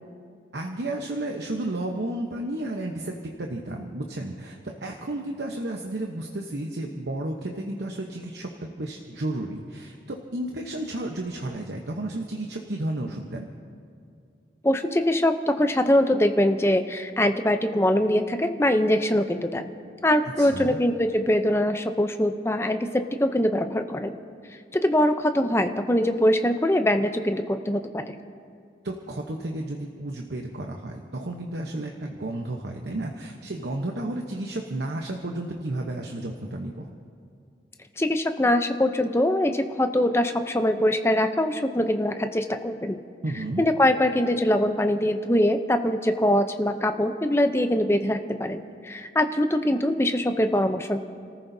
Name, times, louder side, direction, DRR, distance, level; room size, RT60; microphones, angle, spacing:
voice 1, 0.5-13.5 20.4-20.8 28.8-36.9 43.2-43.6, right 1 dB, 75° right, 2 dB, 1.0 m, -32 dB
voice 2, 14.6-19.7 20.0-24.2 24.7-28.2 38.0-43.0 43.6-51.0, left 1 dB, 15° left, 7 dB, 0.6 m, -23 dB
30.0 x 14.5 x 2.7 m, 2.3 s
head